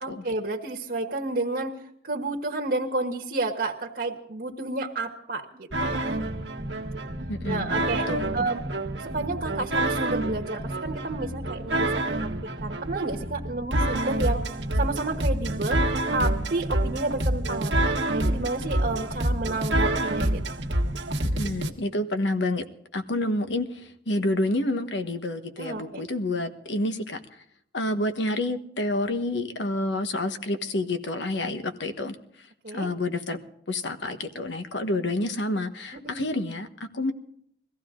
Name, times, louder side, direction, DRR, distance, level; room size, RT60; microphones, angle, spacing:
voice 1, 0.0-1.8 2.0-6.1 7.5-8.1 8.3-8.6 9.0-11.9 12.2-12.3 12.6-14.4 14.7-15.9 16.1-20.4 25.6-26.1 32.6-32.9 36.0-36.3, right 2 dB, 60° right, 1 dB, 1.4 m, -30 dB
sound 1, 5.7-21.7, right 1 dB, 90° right, 1.6 m, -27 dB
voice 2, 7.3-8.4 21.3-22.6 22.9-27.2 27.7-32.5 32.7-33.4 33.7-36.7 36.9-37.1, left 1 dB, 85° left, 8 dB, 1.3 m, -29 dB
21.5 x 15.0 x 3.8 m, 0.70 s
head